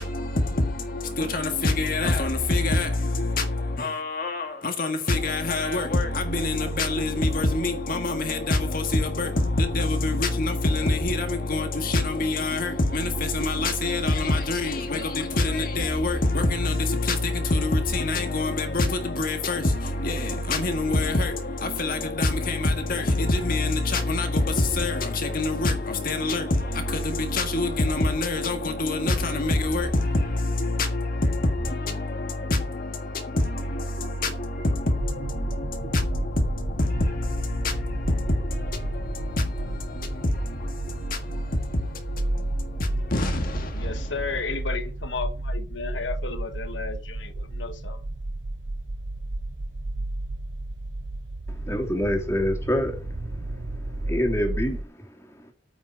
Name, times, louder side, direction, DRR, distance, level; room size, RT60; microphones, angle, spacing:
voice 1, 0.0-44.2, left 2 dB, 50° left, 1.7 m, -26 dB
sound 1, 35.0-54.8, right 1 dB, 90° right, 0.9 m, -32 dB
voice 2, 43.7-48.0, left 4 dB, 85° left, 1.2 m, -33 dB
voice 3, 51.5-53.1 53.5-55.5, equal, 15° left, 2.8 m, -28 dB
9.0 x 6.2 x 8.4 m
head